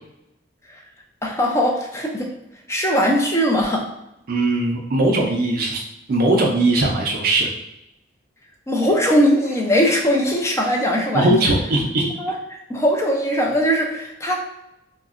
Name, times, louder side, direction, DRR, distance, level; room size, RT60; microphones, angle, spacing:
voice 1, 1.2-2.3 2.7-3.8 8.7-11.5 12.2-12.3 12.7-14.4, equal, 15° left, 1 dB, 0.4 m, -20 dB
voice 2, 4.3-5.8 6.1-7.5 11.1-12.1, right 2 dB, 50° right, -1 dB, 0.4 m, -19 dB
3.6 x 2.0 x 2.4 m, 0.88 s
head